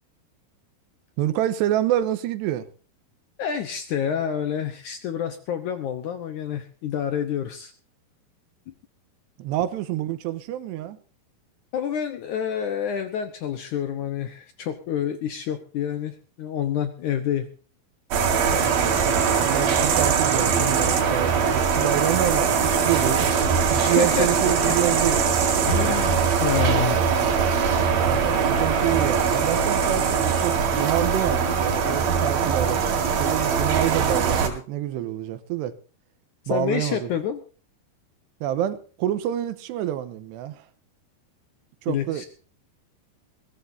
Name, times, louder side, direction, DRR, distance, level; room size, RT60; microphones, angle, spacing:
voice 1, 1.2-2.7 9.4-11.0 18.6-25.2 27.9-35.7 36.5-37.1 38.4-40.6 41.8-42.3, right 12 dB, 90° right, 3.2 m, -27 dB
voice 2, 3.4-7.7 8.7-8.8 11.7-17.5 23.7-24.3 24.6-24.8 25.7-27.0 36.5-37.4 41.9-42.2, left 9 dB, 75° left, 1.8 m, -28 dB
sound 1, 18.1-34.5, right 6 dB, 65° right, 4.0 m, -22 dB
21.0 x 16.5 x 2.7 m
omnidirectional pair, 4.9 m